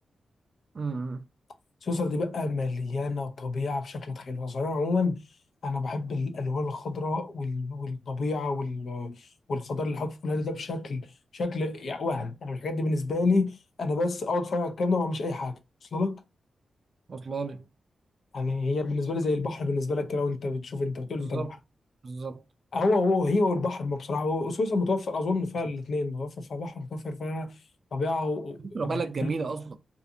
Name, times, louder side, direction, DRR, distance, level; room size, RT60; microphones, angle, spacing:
voice 1, 0.7-1.2 17.1-17.6 21.2-21.5 22.0-22.4 28.6-29.8, right 4 dB, 45° right, 0.4 m, -32 dB
voice 2, 1.8-5.2 5.6-11.1 11.3-15.5 15.9-16.2 18.3-21.5 22.7-27.5 27.9-29.3, left 3 dB, 65° left, 0.5 m, -29 dB
2.5 x 2.4 x 2.6 m
wide cardioid pair, 105°, 0 cm